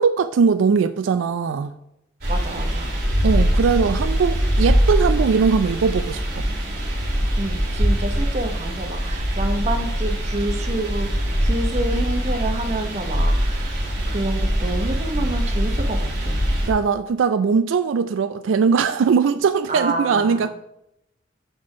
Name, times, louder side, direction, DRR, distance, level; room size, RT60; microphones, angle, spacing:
voice 1, 0.0-1.7 3.2-6.5 16.7-20.5, right 5 dB, 80° right, 0.3 m, -20 dB
sound 1, 2.2-16.7, equal, 50° right, 2.1 m, -22 dB
voice 2, 2.3-3.0 7.4-16.4 19.7-20.5, right 2 dB, 35° right, 0.8 m, -28 dB
6.2 x 4.3 x 6.0 m
head